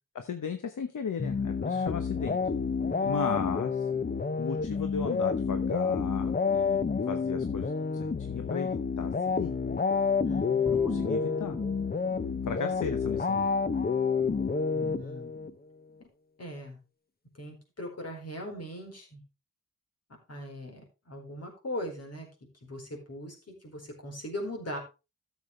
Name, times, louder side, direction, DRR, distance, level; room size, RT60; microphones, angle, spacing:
voice 1, 0.1-2.4 3.0-3.9 4.4-9.5 10.7-11.6 12.5-13.5, left 6 dB, 70° left, 8 dB, 1.0 m, -35 dB
sound 1, 1.2-15.5, left 5 dB, 30° left, 0.7 m, -29 dB
voice 2, 2.9-3.4 10.2-11.0 14.7-15.3 16.4-16.8 17.3-19.2 20.3-22.3 22.6-23.4 23.6-24.8, left 1 dB, 50° left, 2 dB, 4.3 m, -40 dB
Bowed string instrument, 10.7-13.9, right 1 dB, 20° right, 1.7 m, -45 dB
13.5 x 7.2 x 3.2 m, 0.28 s
wide cardioid pair, 85°, 32 cm